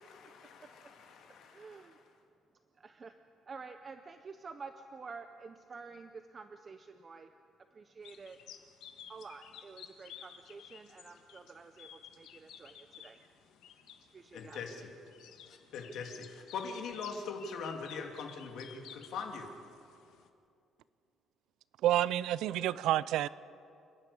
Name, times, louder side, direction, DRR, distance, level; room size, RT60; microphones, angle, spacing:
voice 1, 0.0-2.0 14.3-14.9 15.5-19.5, left 5 dB, 65° left, 3 dB, 2.4 m, -42 dB
voice 2, 1.5-1.9 2.8-3.1 3.5-7.3 7.8-8.4 9.1-11.9 12.2-13.2 14.1-14.6, right 4 dB, 25° right, 8 dB, 0.6 m, -49 dB
sound 1, 8.0-20.3, left 9 dB, 85° left, 1.4 m, -54 dB
voice 3, 21.8-23.3, right 13 dB, 75° right, 19 dB, 0.4 m, -29 dB
28.0 x 11.0 x 8.6 m, 2.5 s
cardioid pair, 175°, 0 cm